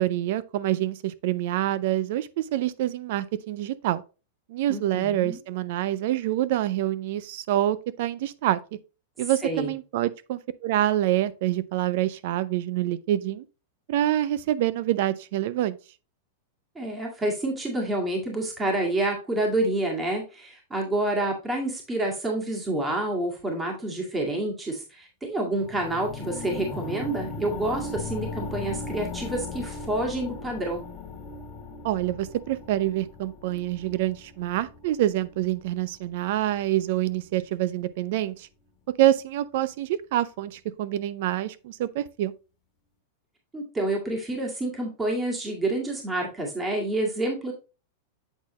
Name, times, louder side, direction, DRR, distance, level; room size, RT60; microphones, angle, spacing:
voice 1, 0.0-4.0 4.5-8.6 9.2-13.4 13.9-15.8 31.8-38.5 38.9-42.3, right 13 dB, 60° right, 0.5 m, -26 dB
voice 2, 4.7-5.4 9.4-9.7 16.8-30.8 43.5-47.5, right 1 dB, 15° right, 1.9 m, -28 dB
sound 1, 25.6-35.7 36.3-36.4, left 3 dB, 20° left, 1.9 m, -37 dB
8.0 x 4.2 x 3.0 m
hypercardioid pair, 130°, 0 cm